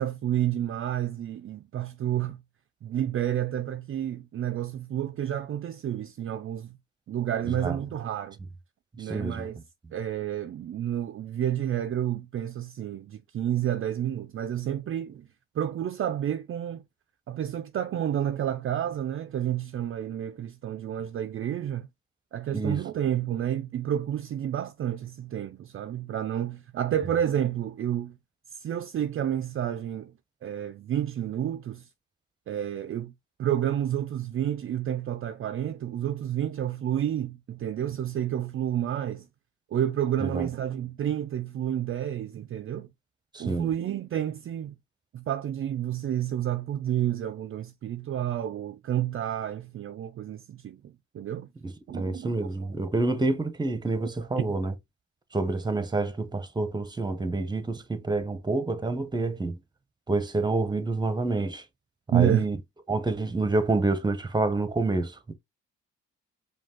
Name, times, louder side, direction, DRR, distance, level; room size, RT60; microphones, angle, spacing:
voice 1, 0.0-2.4 2.8-6.8 7.1-8.4 9.0-9.6 9.9-15.3 15.5-16.8 17.3-21.9 22.3-28.2 28.5-30.1 30.4-31.9 32.5-33.1 33.4-39.3 39.7-42.9 43.4-44.7 45.1-51.5 51.9-52.7 54.0-54.5 62.1-62.5, right 10 dB, 40° right, 0.4 m, -30 dB
voice 2, 9.1-9.5 22.5-22.8 40.2-40.5 43.3-43.7 51.6-54.7 55.3-59.6 60.1-61.6 62.1-62.6 62.9-65.3, right 3 dB, 15° right, 0.8 m, -28 dB
5.1 x 2.3 x 3.7 m
cardioid pair, 95°, 32 cm